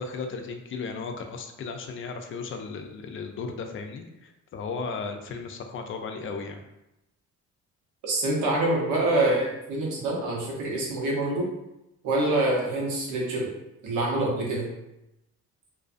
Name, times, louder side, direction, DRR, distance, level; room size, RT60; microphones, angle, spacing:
voice 1, 0.0-6.6, left 4 dB, 45° left, 5 dB, 0.4 m, -35 dB
voice 2, 8.0-11.5 12.0-13.5 13.8-14.7, right 2 dB, 90° right, -3 dB, 0.8 m, -26 dB
2.5 x 2.3 x 2.4 m, 0.91 s
cardioid pair, 90°, 30 cm